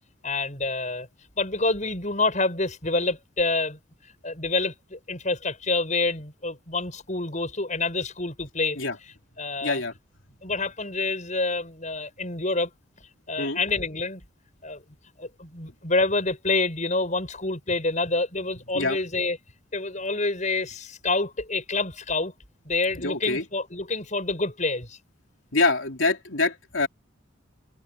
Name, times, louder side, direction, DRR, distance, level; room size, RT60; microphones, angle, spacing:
voice 1, 0.2-1.1 1.4-3.8 4.2-8.8 9.4-9.8 10.4-12.7 13.0-14.2 14.6-14.8 15.2-19.4 19.7-22.3 22.6-25.0, left 3 dB, 35° left, 7.4 m, -27 dB
voice 2, 9.6-9.9 13.4-13.6 18.7-19.0 23.0-23.4 25.5-26.9, left 3 dB, 70° left, 3.6 m, -25 dB
head